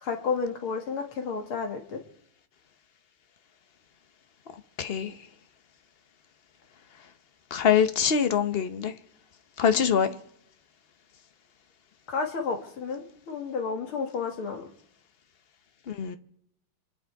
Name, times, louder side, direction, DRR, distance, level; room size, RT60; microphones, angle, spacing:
voice 1, 0.0-2.0 12.1-14.7, left 5 dB, 75° left, 2.9 m, -31 dB
voice 2, 4.5-5.2 7.5-8.9 9.6-10.1 15.9-16.2, left 7 dB, 55° left, 0.6 m, -24 dB
26.5 x 10.0 x 4.7 m
omnidirectional pair, 2.3 m